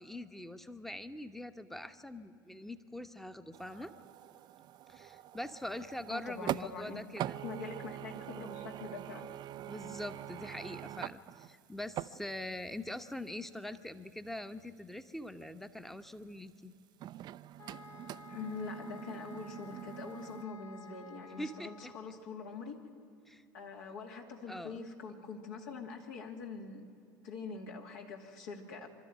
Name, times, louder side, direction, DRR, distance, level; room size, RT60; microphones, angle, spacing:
voice 1, 0.0-3.9 4.9-7.4 9.6-16.7 21.4-21.9 23.3-23.4 24.5-24.8, left 1 dB, 5° left, 10 dB, 1.1 m, -43 dB
sound 1, 3.5-6.9 7.2-12.7 13.0-13.1 17.0-20.4, right 13 dB, 40° right, 0.5 m, -43 dB
voice 2, 6.1-7.0 7.4-9.3 18.3-22.9 23.5-26.9 27.2-28.9, left 4 dB, 65° left, 2 dB, 2.7 m, -44 dB
sound 2, 17.6-22.3, left 4 dB, 25° left, 1.3 m, -53 dB
25.0 x 13.0 x 9.4 m, 2.5 s
hypercardioid pair, 80°, 11 cm